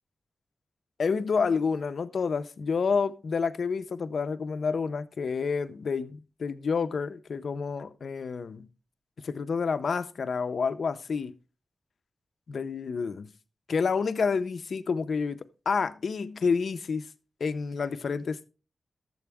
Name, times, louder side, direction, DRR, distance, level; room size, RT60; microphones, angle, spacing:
voice 1, 1.0-8.7 9.2-11.3 12.5-13.3 13.7-15.4 15.7-17.0 17.4-18.5, left 5 dB, 70° left, 0.7 m, -29 dB
12.5 x 7.8 x 3.5 m
wide cardioid pair, 165°, 0 cm